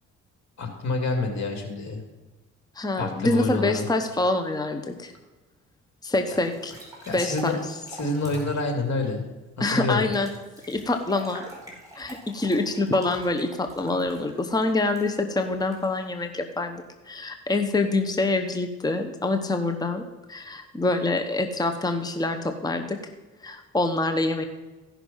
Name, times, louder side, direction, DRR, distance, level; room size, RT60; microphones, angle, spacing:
voice 1, 0.6-2.0 3.0-3.8 6.3-6.4 7.0-7.5 7.9-9.2 9.7-10.0, left 3 dB, 65° left, 4 dB, 2.6 m, -27 dB
voice 2, 2.8-5.1 6.0-6.7 7.1-7.6 9.6-10.3 10.7-11.4 12.0-23.0 23.4-24.4, left 2 dB, 15° left, 6 dB, 0.9 m, -26 dB
sound 1, 6.4-8.7 10.1-16.2, right 1 dB, 10° right, 4.2 m, -42 dB
15.0 x 6.0 x 5.5 m, 1.2 s
cardioid pair, 90°, 30 cm